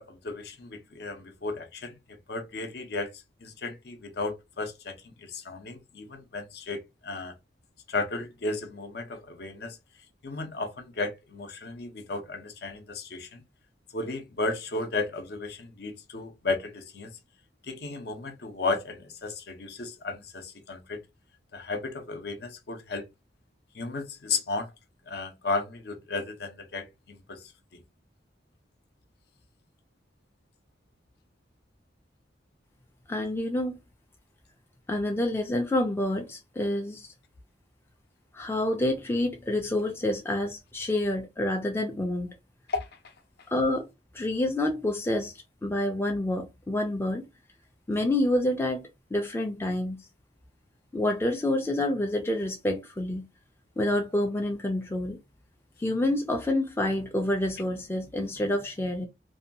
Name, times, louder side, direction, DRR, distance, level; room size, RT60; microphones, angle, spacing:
voice 1, 0.0-3.1 3.4-7.3 7.9-9.8 10.2-13.4 13.9-17.1 17.7-21.0 21.5-23.1 23.7-24.7 25.1-27.4 27.7-27.8 42.7-42.9, left 3 dB, 60° left, 0.6 m, -34 dB
voice 2, 33.1-33.8 34.9-37.1 38.3-42.3 43.5-43.9 44.1-45.3 45.6-47.3 47.9-50.0 50.9-53.2 53.8-55.2 55.8-59.1, left 1 dB, 15° left, 0.4 m, -28 dB
2.7 x 2.2 x 2.6 m
head